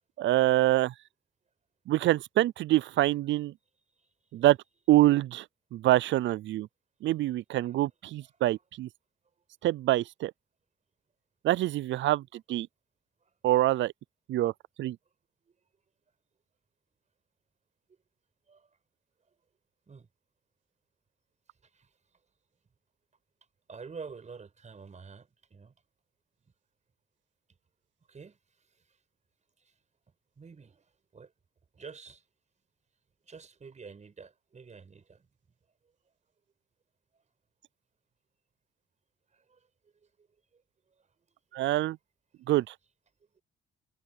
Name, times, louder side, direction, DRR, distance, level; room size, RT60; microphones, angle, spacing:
voice 1, 0.2-0.9 1.9-3.5 4.3-4.6 4.9-5.4 5.7-6.7 7.0-8.9 9.6-10.3 11.4-12.7 13.4-13.9 14.3-14.5 14.8-15.0 41.5-42.0 42.5-42.7, right 15 dB, 70° right, 0.4 m, -25 dB
voice 2, 4.0-4.3 7.6-7.8 13.2-13.3 15.5-15.6 18.5-18.8 19.9-20.1 21.6-21.9 23.7-25.7 28.1-29.0 29.6-29.7 30.4-31.3 31.7-32.2 33.2-35.3 37.1-37.2 39.3-40.3 40.5-40.6 40.9-41.1 43.3-43.4, right 5 dB, 35° right, 5.4 m, -49 dB
cardioid pair, 90°, 20 cm